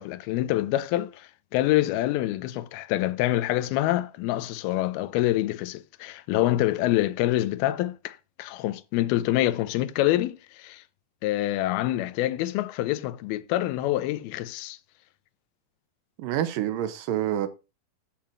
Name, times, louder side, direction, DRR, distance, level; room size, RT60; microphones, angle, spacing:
voice 1, 0.0-10.8 11.2-14.8, left 15 dB, 85° left, 2.6 m, -26 dB
voice 2, 16.2-17.5, right 11 dB, 75° right, 2.3 m, -27 dB
8.6 x 4.3 x 7.3 m
omnidirectional pair, 4.3 m